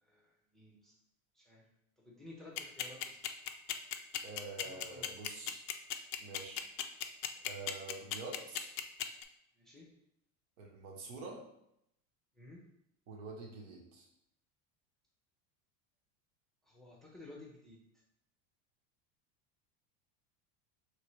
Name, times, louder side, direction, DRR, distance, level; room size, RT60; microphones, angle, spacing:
voice 1, 0.5-0.9 1.3-1.6 2.0-3.2 4.6-5.2 9.6-9.9 12.4-12.6 16.7-17.8, left 2 dB, ahead, -4 dB, 0.7 m, -54 dB
sound 1, 2.6-9.2, left 12 dB, 50° left, 0.4 m, -36 dB
voice 2, 4.2-5.6 6.2-6.7 7.4-8.7 10.6-11.4 13.1-14.1, right 3 dB, 65° right, 0 dB, 1.3 m, -47 dB
4.3 x 3.3 x 3.1 m, 0.77 s
supercardioid pair, 150°, 39 cm